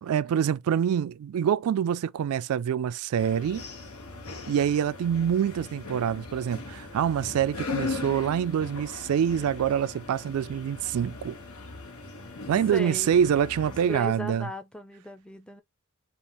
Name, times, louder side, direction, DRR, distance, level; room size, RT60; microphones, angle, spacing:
voice 1, 0.0-3.6 4.5-11.3 12.5-14.5, right 8 dB, 75° right, 0.3 m, -26 dB
sound 1, 3.2-14.0, left 3 dB, 85° left, 1.3 m, -39 dB
voice 2, 12.6-13.2 13.7-15.6, left 1 dB, 5° left, 0.4 m, -38 dB
5.2 x 2.4 x 2.9 m
head